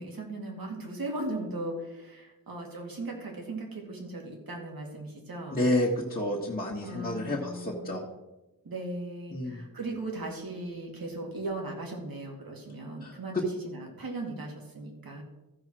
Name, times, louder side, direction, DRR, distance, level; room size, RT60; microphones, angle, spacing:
voice 1, 0.0-5.6 6.8-7.9 8.6-13.4 13.6-15.2, right 2 dB, 80° right, 0 dB, 2.5 m, -38 dB
voice 2, 5.5-8.0 9.3-9.6 13.0-13.4, left 1 dB, 25° left, -4 dB, 1.5 m, -30 dB
14.0 x 4.8 x 6.1 m, 1.0 s
wide cardioid pair, 135°, 35 cm